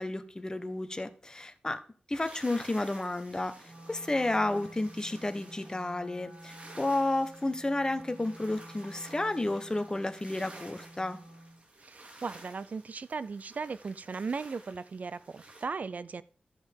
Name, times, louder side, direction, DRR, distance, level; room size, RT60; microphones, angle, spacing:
voice 1, 0.0-1.8 2.1-11.2, left 2 dB, 25° left, 9 dB, 1.1 m, -32 dB
sound 1, 2.1-15.7, right 2 dB, 45° right, 2.3 m, -53 dB
Wind instrument woodwind instrument, 3.6-11.6, right 1 dB, 25° right, 2.4 m, -51 dB
voice 2, 11.8-16.2, right 4 dB, 60° right, 16 dB, 0.5 m, -37 dB
14.5 x 5.3 x 3.7 m, 0.42 s
wide cardioid pair, 75°, 3 cm